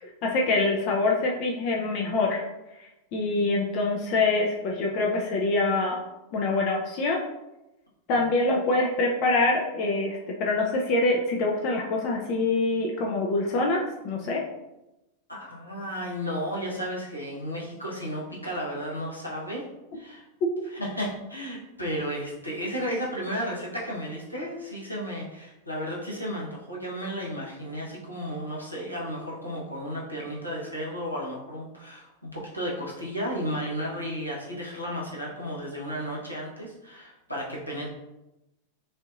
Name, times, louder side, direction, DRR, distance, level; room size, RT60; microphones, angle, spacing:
voice 1, 0.0-2.4 3.1-6.0 6.3-7.2 8.1-14.4, left 2 dB, 40° left, 0 dB, 0.6 m, -25 dB
voice 2, 15.3-19.6 19.9-20.2 20.7-37.9, equal, 85° left, -5 dB, 1.2 m, -33 dB
5.7 x 2.7 x 2.6 m, 0.95 s
figure-of-eight pair, 90°, 0 cm